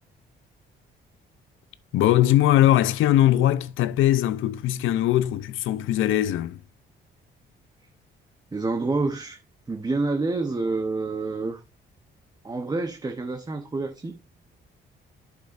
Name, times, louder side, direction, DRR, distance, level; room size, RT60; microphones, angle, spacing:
voice 1, 1.9-6.6, left 13 dB, 80° left, 0.5 m, -21 dB
voice 2, 8.5-9.4 9.7-11.6 12.4-14.2, right 3 dB, 20° right, 0.8 m, -28 dB
8.2 x 6.4 x 2.5 m
cardioid pair, 90°, 20 cm